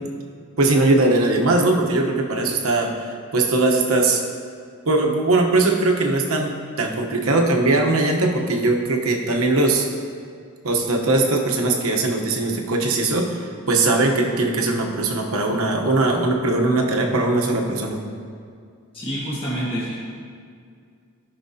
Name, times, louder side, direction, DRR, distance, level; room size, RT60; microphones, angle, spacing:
voice 1, 0.6-4.2 4.8-6.5 6.8-9.9 10.6-18.0, right 2 dB, 70° right, 1 dB, 1.0 m, -20 dB
voice 2, 18.9-20.0, equal, 25° left, -8 dB, 1.5 m, -27 dB
14.5 x 6.0 x 2.8 m, 2.2 s
head